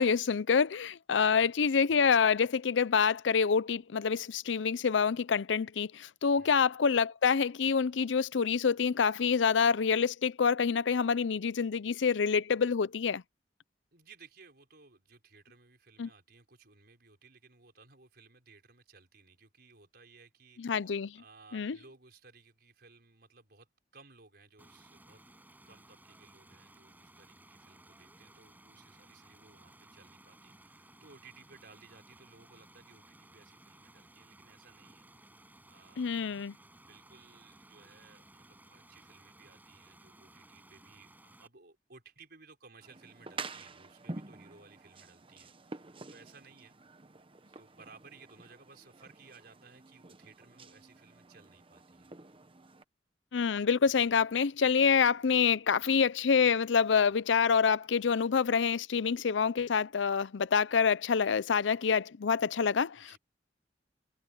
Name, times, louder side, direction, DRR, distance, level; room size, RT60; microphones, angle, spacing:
voice 1, 0.0-13.2 16.0-16.1 20.6-21.2 21.5-21.8 36.0-36.5 53.3-63.1, left 6 dB, 85° left, 0.5 m, -27 dB
voice 2, 1.1-1.4 6.3-6.6 13.9-23.7 23.9-25.2 25.6-35.1 35.7-36.2 36.9-46.7 47.5-52.1 62.9-63.2, right 4 dB, 60° right, 5.2 m, -59 dB
Stream, 24.6-41.5, right 1 dB, 10° right, 7.6 m, -58 dB
sound 1, 42.8-52.8, right 3 dB, 30° right, 1.0 m, -48 dB
head